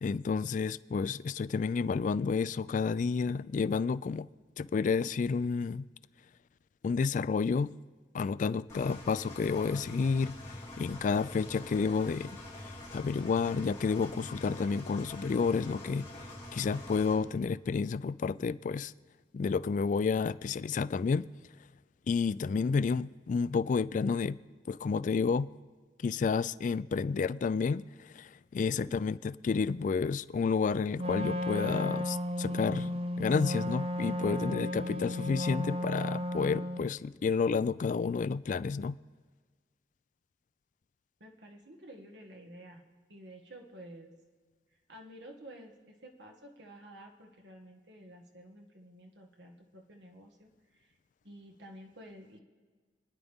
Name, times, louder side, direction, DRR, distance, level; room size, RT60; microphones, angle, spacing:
voice 1, 0.0-4.3 4.6-5.9 6.8-7.7 8.1-16.1 16.5-18.9 19.3-21.3 22.1-24.4 24.7-25.5 26.0-39.0, left 5 dB, 45° left, 0.3 m, -30 dB
Engine, 8.7-17.1, left 1 dB, 15° left, 3.5 m, -45 dB
voice 2, 28.8-29.1 41.2-42.8 43.1-44.2 44.9-50.9 51.2-52.4, right 1 dB, 75° right, 1.8 m, -51 dB
Wind instrument woodwind instrument, 31.0-36.9, left 1 dB, 35° right, 0.5 m, -34 dB
29.0 x 10.0 x 3.6 m
head